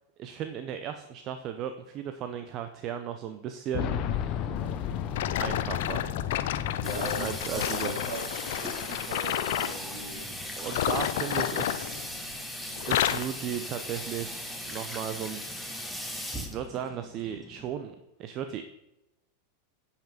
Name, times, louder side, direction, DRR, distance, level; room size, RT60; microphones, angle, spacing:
voice 1, 0.2-4.0 5.4-6.1 7.2-8.0 10.6-12.0 12.8-15.4 16.4-18.6, right 9 dB, 45° right, 8 dB, 0.7 m, -36 dB
Boom, 3.7-8.5 8.7-8.8 10.0-10.1, left 9 dB, 45° left, 0.8 m, -33 dB
sound 1, 5.1-9.8 10.6-12.4 12.7-13.4 14.0-14.2 14.8-14.9, left 12 dB, 70° left, 0.5 m, -31 dB
voice 2, 6.7-8.2 8.6-10.2, right 2 dB, 65° right, 2 dB, 2.9 m, -39 dB
Water tap faucet / Sink (filling or washing), 6.8-17.7, equal, ahead, 1.5 m, -39 dB
10.5 x 5.7 x 5.1 m, 0.92 s
hypercardioid pair, 100°, 0 cm